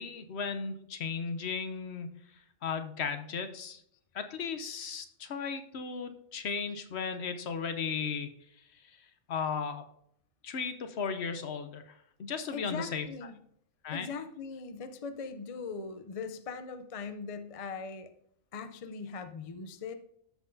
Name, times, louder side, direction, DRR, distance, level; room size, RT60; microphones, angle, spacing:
voice 1, 0.0-2.1 2.6-3.8 4.1-8.3 8.7-9.0 9.3-9.8 10.4-13.3 13.8-14.1, left 5 dB, 60° left, 9 dB, 1.0 m, -36 dB
voice 2, 12.5-13.3 13.9-18.1 18.5-19.9, left 5 dB, 45° left, 9 dB, 0.5 m, -40 dB
13.5 x 5.7 x 2.7 m, 0.71 s
omnidirectional pair, 1.3 m